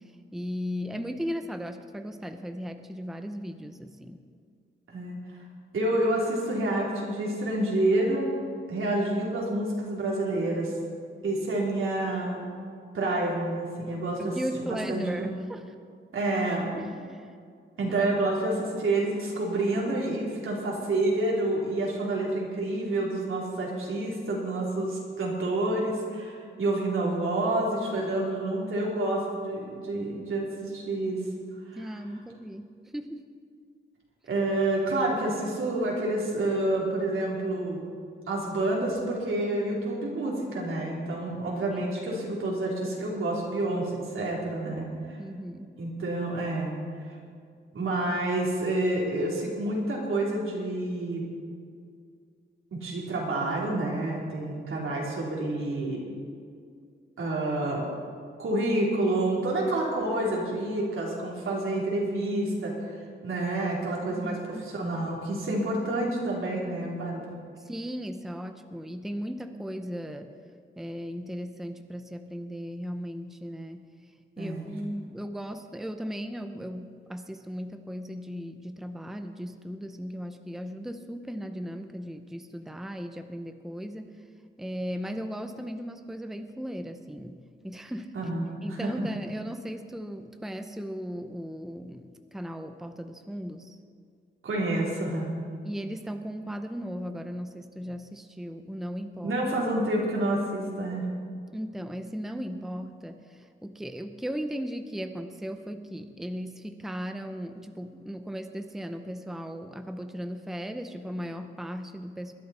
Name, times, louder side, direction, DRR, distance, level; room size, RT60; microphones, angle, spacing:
voice 1, 0.3-4.2 14.2-15.6 16.8-17.4 18.0-18.1 31.7-32.7 32.9-33.2 45.2-45.7 64.1-64.7 67.6-70.3 70.8-73.9 74.4-84.1 84.6-87.4 87.6-88.1 88.6-93.8 95.6-99.3 101.5-112.3, equal, ahead, 7 dB, 0.6 m, -37 dB
voice 2, 4.9-5.2 5.7-8.4 8.7-10.7 11.2-12.5 12.9-15.3 16.1-16.7 17.8-31.2 31.7-32.0 34.3-37.9 38.3-45.2 45.8-46.8 47.7-51.2 52.7-56.0 57.2-57.9 58.4-64.4 64.7-67.2 74.4-74.6 88.1-89.1 94.4-95.4 99.2-101.1, right 2 dB, 80° right, -3 dB, 3.3 m, -28 dB
21.0 x 11.5 x 4.2 m, 2.2 s
wide cardioid pair, 140°, 21 cm